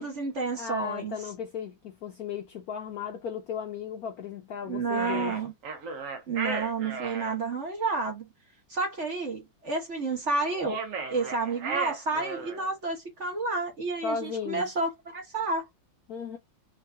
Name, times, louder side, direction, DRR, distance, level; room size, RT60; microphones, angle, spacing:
voice 1, 0.0-1.2 4.6-5.5 6.3-8.2 8.7-10.8 11.1-15.6, right 3 dB, 40° right, 1.4 m, -30 dB
voice 2, 0.6-5.4 14.0-14.7 16.1-16.4, left 7 dB, 70° left, 0.9 m, -35 dB
sound 1, 4.9-7.3 10.5-12.7, right 4 dB, 55° right, 1.0 m, -35 dB
3.7 x 2.7 x 3.3 m
omnidirectional pair, 2.1 m